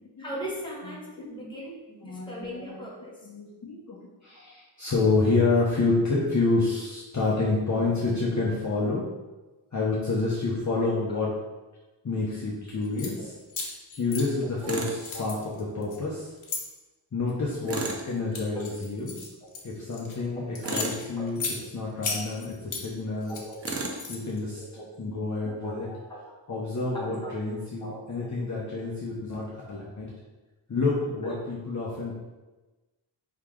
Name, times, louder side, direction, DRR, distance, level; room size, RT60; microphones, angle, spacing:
voice 1, 0.2-3.1 13.2-13.3 15.1-15.2 18.5-18.6 20.4-20.8 21.2-21.3 23.3-23.6 24.6-24.9 25.4-26.2 26.9-27.3 27.8-28.3 31.2-31.3, equal, 10° left, -5 dB, 1.2 m, -39 dB
voice 2, 0.8-1.3 2.0-2.8 3.2-4.0 4.2-9.0 9.7-11.3 12.0-13.3 13.9-16.3 17.1-19.2 19.6-21.4 21.7-23.4 24.1-24.6 25.0-25.9 26.5-30.1 30.7-32.1, left 3 dB, 35° left, -6 dB, 0.8 m, -28 dB
sound 1, 12.8-13.1 13.5-14.7 15.0-16.6 17.3-17.6 18.1-20.2 20.6-21.6 22.0-22.9 23.2-24.4, left 4 dB, 90° left, 1.1 m, -35 dB
Tools, 14.7-15.0 17.7-18.1 20.6-21.1 23.6-24.0, right 3 dB, 30° right, 0.5 m, -32 dB
4.7 x 2.9 x 3.6 m, 1.1 s
wide cardioid pair, 120°, 47 cm